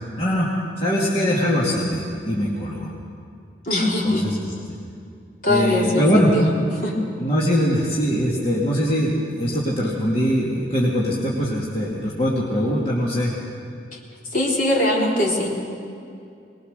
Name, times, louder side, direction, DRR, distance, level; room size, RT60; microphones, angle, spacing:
voice 1, 0.2-0.5 0.8-2.9 4.0-4.4 5.5-6.3 7.2-13.3, equal, 35° left, -6 dB, 2.5 m, -22 dB
voice 2, 3.6-4.2 5.4-6.5 6.8-7.0 13.9-14.0 14.3-15.5, left 1 dB, 50° left, -3 dB, 3.8 m, -21 dB
22.0 x 21.0 x 6.8 m, 2.5 s
head